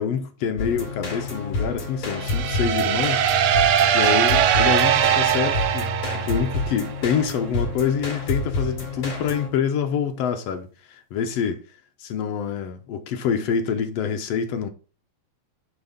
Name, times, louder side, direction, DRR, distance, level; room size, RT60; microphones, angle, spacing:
voice 1, 0.0-11.6 12.0-14.7, left 7 dB, 65° left, 1.8 m, -26 dB
sound 1, 0.6-9.5, left 2 dB, 45° left, 3.6 m, -29 dB
sound 2, 2.2-6.9, right 10 dB, 90° right, 1.2 m, -21 dB
9.6 x 3.9 x 5.1 m
omnidirectional pair, 3.4 m